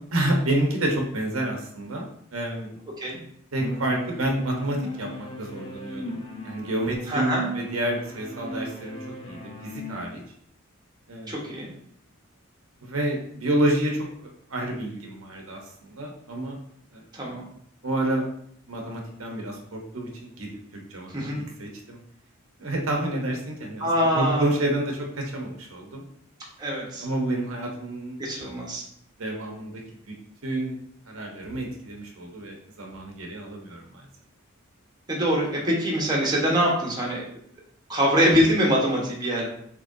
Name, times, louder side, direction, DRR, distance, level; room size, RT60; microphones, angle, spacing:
voice 1, 0.1-2.8 3.5-9.0 9.2-10.2 11.1-11.5 12.8-14.1 14.5-16.6 16.9-17.1 17.8-18.2 18.7-21.3 21.6-22.0 22.6-23.9 24.1-26.0 27.0-28.2 29.2-29.8 30.1-30.2 30.4-30.8 31.1-34.0, right 1 dB, 80° right, 1 dB, 1.0 m, -29 dB
sound 1, 3.6-10.0, equal, 25° left, 0.6 m, -37 dB
voice 2, 7.1-7.4 11.3-11.7 17.1-17.4 21.1-21.4 23.8-24.5 26.6-27.0 28.2-28.8 35.1-37.2 37.9-39.5, equal, 20° right, -3 dB, 1.1 m, -24 dB
6.4 x 3.1 x 2.6 m, 0.67 s
head